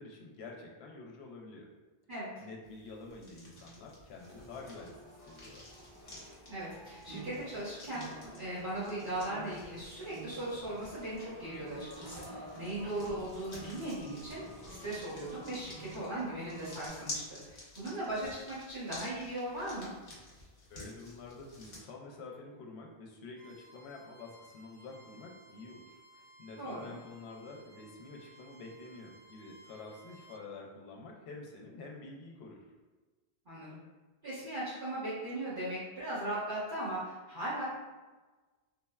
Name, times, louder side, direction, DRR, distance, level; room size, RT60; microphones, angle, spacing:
voice 1, 0.0-1.7 2.4-5.7 20.7-32.7, left 3 dB, 75° left, 0 dB, 0.8 m, -48 dB
sound 1, 2.6-21.8, left 1 dB, 45° left, 0.9 m, -51 dB
sound 2, 4.2-16.9, right 1 dB, 80° right, 1.8 m, -50 dB
voice 2, 6.5-14.4 14.7-19.9 26.6-27.0 33.4-33.8 34.2-37.6, right 1 dB, 50° right, -15 dB, 1.3 m, -38 dB
Bowed string instrument, 23.3-30.4, right 2 dB, 10° right, 0.9 m, -59 dB
3.6 x 2.1 x 2.2 m, 1.3 s
omnidirectional pair, 1.1 m